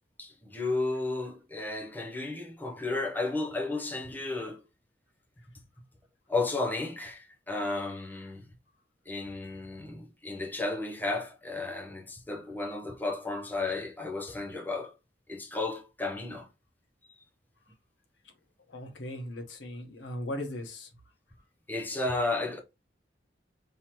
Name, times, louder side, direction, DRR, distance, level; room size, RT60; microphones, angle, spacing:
voice 1, 0.2-4.6 6.3-8.4 9.1-14.9 15.3-16.5 21.7-22.6, left 2 dB, 10° left, 0.7 m, -33 dB
voice 2, 18.7-20.9, left 1 dB, 80° left, 1.4 m, -38 dB
5.5 x 3.0 x 3.0 m
head